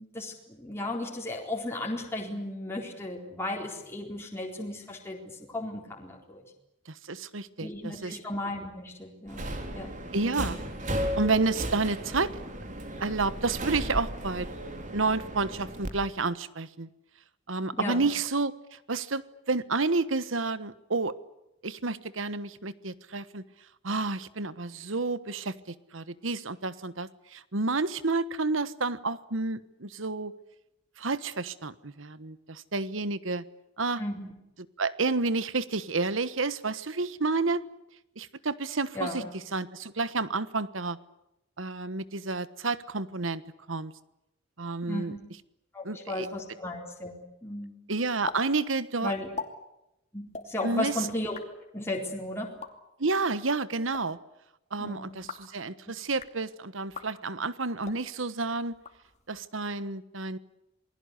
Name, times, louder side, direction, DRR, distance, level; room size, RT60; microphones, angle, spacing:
voice 1, 0.0-6.4 7.6-10.0 10.2-10.3 17.7-18.1 34.0-34.3 38.9-39.3 44.9-45.2 45.7-47.7 49.0-49.3 50.1-51.4 51.7-52.6 54.8-55.3, left 1 dB, 10° left, -1 dB, 4.2 m, -35 dB
voice 2, 7.1-8.2 10.1-10.6 11.2-12.3 13.0-14.5 14.9-16.9 17.5-18.5 18.9-21.1 21.6-23.4 23.8-30.3 31.0-33.4 33.8-34.0 34.8-37.6 38.2-39.2 39.5-41.0 41.6-43.4 43.7-43.9 44.6-45.1 45.8-46.3 47.9-49.1 50.6-51.0 53.0-54.2 54.7-58.7 59.3-60.4, right 3 dB, 75° right, 15 dB, 1.3 m, -30 dB
Subway metro underground, 9.3-15.9, right 1 dB, 40° right, 3.8 m, -35 dB
sound 1, 48.3-48.4 48.7-48.8 49.2-49.5 50.3-50.5 51.2-51.5 52.4-52.7 53.7-54.0 55.1-55.5 56.0-56.4 56.9-57.1 57.8-58.0 58.7-59.4, left 4 dB, 35° left, 2.7 m, -41 dB
28.5 x 21.0 x 8.3 m, 0.88 s
head